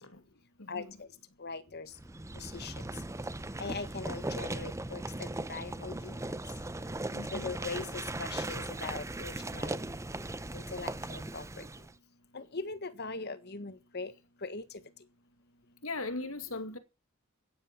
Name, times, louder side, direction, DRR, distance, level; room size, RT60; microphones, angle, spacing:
voice 1, 0.6-1.0 7.1-7.5 15.8-16.8, left 3 dB, 90° left, 2.4 m, -39 dB
voice 2, 1.4-1.9 2.5-2.7 3.6-5.0 5.5-6.1 7.3-7.8 8.2-9.7 10.5-11.4 12.3-14.1 14.4-14.6, left 4 dB, 50° left, 1.6 m, -40 dB
sound 1, 1.9-11.9, right 2 dB, 15° right, 0.7 m, -38 dB
15.5 x 10.5 x 6.0 m
head